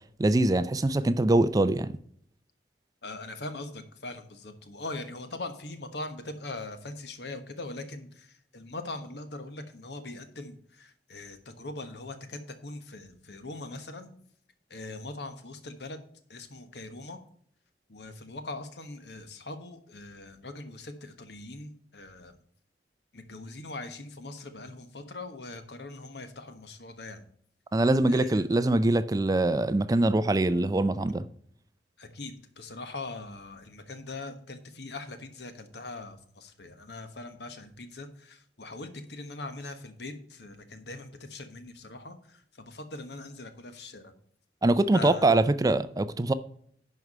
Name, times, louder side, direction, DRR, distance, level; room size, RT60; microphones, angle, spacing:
voice 1, 0.2-1.9 27.7-31.3 44.6-46.3, right 2 dB, 20° right, 0.4 m, -23 dB
voice 2, 3.0-14.1 14.7-16.0 16.3-17.2 17.9-22.3 23.1-27.3 28.1-28.5 32.0-44.1 44.9-45.3, left 2 dB, 70° left, 1.3 m, -41 dB
11.0 x 4.7 x 5.4 m
head